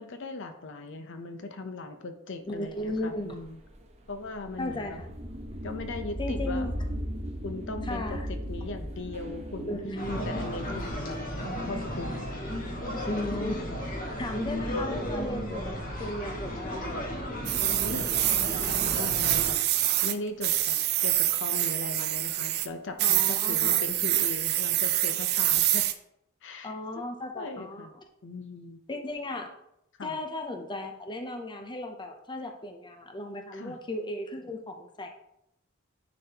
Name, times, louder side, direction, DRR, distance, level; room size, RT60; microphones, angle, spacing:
voice 1, 0.0-3.6 4.1-5.0 5.6-6.7 7.4-9.8 10.2-11.2 11.6-12.9 17.8-19.6 20.0-25.9 26.4-27.0 27.4-27.9 28.2-28.8 30.0-30.2 33.5-33.8, left 3 dB, 60° left, 7 dB, 0.7 m, -39 dB
voice 2, 2.5-3.4 4.6-5.1 6.2-6.7 7.8-8.3 9.6-10.2 13.1-13.9 14.2-17.0 23.0-23.8 26.6-28.0 28.9-29.5 30.0-35.1, left 1 dB, 20° left, 4 dB, 0.6 m, -36 dB
sound 1, 2.8-11.8, equal, 30° right, 0.8 m, -37 dB
sound 2, 10.0-19.5, equal, 45° left, 1.5 m, -34 dB
sound 3, 17.4-20.1 20.4-22.7 23.0-25.9, right 13 dB, 50° right, 0.5 m, -26 dB
9.9 x 4.1 x 2.8 m, 0.78 s
head